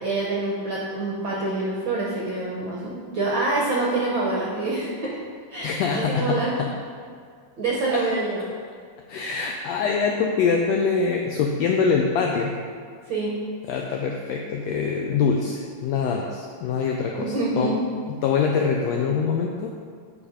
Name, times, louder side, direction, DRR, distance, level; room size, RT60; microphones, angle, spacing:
voice 1, 0.0-5.2 5.5-6.6 7.6-8.4 13.1-13.3 17.2-17.7, right 2 dB, 70° right, -5 dB, 1.2 m, -26 dB
voice 2, 5.6-6.7 7.9-8.0 9.1-12.5 13.7-17.7 18.1-19.7, left 5 dB, 85° left, 1 dB, 1.5 m, -24 dB
8.6 x 4.8 x 5.0 m, 2.1 s
omnidirectional pair, 3.6 m